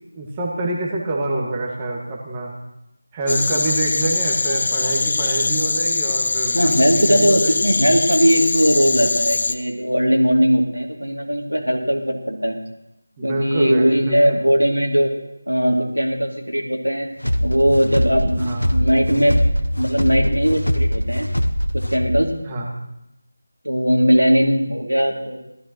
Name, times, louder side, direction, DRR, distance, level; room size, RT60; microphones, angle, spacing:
voice 1, 0.1-2.5 3.1-7.7 13.2-14.4 18.4-18.6 22.5-22.7, right 2 dB, 15° right, -3 dB, 1.8 m, -26 dB
sound 1, 3.3-9.5, left 3 dB, 40° left, 0.7 m, -22 dB
voice 2, 6.5-12.6 13.2-15.1 15.5-17.1 17.4-19.3 19.8-21.3 21.9-22.3 23.6-25.4, equal, 90° right, 0 dB, 2.7 m, -19 dB
sound 2, 17.2-22.3, equal, 80° left, 1.2 m, -22 dB
18.5 x 13.5 x 3.1 m, 0.85 s
figure-of-eight pair, 165°, 0 cm